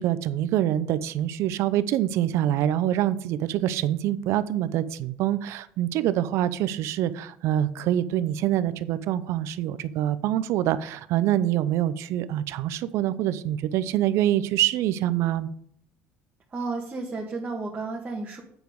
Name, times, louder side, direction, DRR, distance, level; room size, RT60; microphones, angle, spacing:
voice 1, 0.0-15.5, right 12 dB, 70° right, 14 dB, 0.6 m, -25 dB
voice 2, 16.5-18.4, right 3 dB, 30° right, -2 dB, 1.8 m, -32 dB
9.0 x 4.7 x 5.3 m, 0.64 s
supercardioid pair, 95°, 5 cm